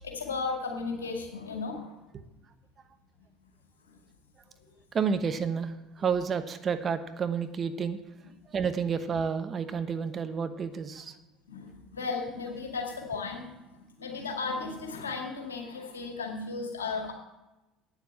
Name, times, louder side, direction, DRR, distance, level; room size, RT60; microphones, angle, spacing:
voice 1, 0.0-1.9 3.9-4.0 11.5-17.1, left 4 dB, 90° left, 1 dB, 2.1 m, -35 dB
voice 2, 4.9-8.0 8.5-11.1, right 6 dB, 40° right, 10 dB, 1.0 m, -30 dB
9.2 x 7.3 x 7.6 m, 1.0 s
hypercardioid pair, 70°, 0 cm